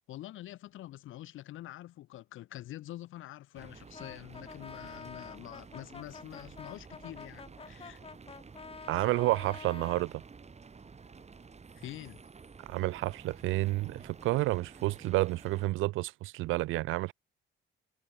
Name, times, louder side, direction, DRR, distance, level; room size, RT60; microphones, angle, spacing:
voice 1, 0.1-8.0 11.8-12.2, left 14 dB, 85° left, 1.8 m, -46 dB
sound 1, 3.5-15.7, right 5 dB, 35° right, 4.5 m, -52 dB
Brass instrument, 3.9-10.1, left 5 dB, 30° left, 1.3 m, -48 dB
voice 2, 8.9-10.2 12.7-17.1, right 18 dB, 85° right, 0.5 m, -30 dB
cardioid pair, 90°, 20 cm